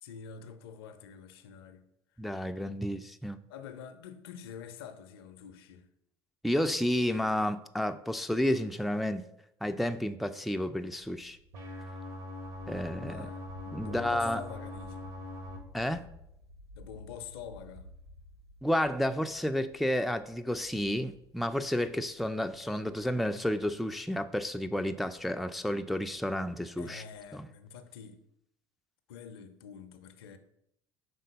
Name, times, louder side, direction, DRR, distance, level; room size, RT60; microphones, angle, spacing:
voice 1, 0.0-1.9 3.5-5.9 13.0-13.4 13.8-15.1 16.7-17.9 26.8-28.2 29.1-30.4, left 7 dB, 70° left, 0.5 m, -46 dB
voice 2, 2.2-3.4 6.4-9.2 9.6-11.4 12.7-13.3 13.7-14.4 15.7-16.1 18.6-27.0 27.3-27.5, left 1 dB, ahead, 0.3 m, -31 dB
sound 1, 10.9-27.3, left 1 dB, 90° right, 0.7 m, -55 dB
sound 2, 11.5-15.6, left 1 dB, 65° right, 1.5 m, -42 dB
5.3 x 3.8 x 5.2 m
figure-of-eight pair, 60°, 13 cm